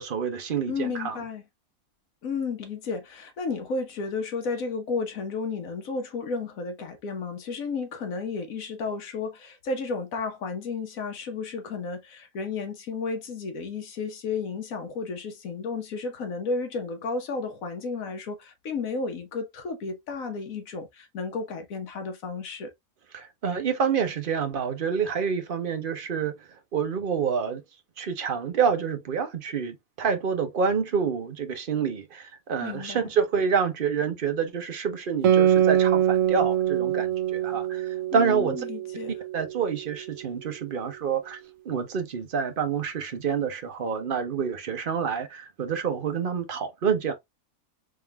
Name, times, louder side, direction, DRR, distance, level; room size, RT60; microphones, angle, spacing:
voice 1, 0.0-1.2 23.1-26.3 26.7-27.6 28.0-38.6 39.3-41.4 41.6-47.1, right 6 dB, 45° right, 0.9 m, -27 dB
voice 2, 0.7-1.4 2.2-22.7 32.6-33.1 38.1-39.1, left 4 dB, 70° left, 1.4 m, -32 dB
Guitar, 35.2-40.2, right 10 dB, 65° right, 1.0 m, -24 dB
3.7 x 3.7 x 2.2 m
omnidirectional pair, 1.5 m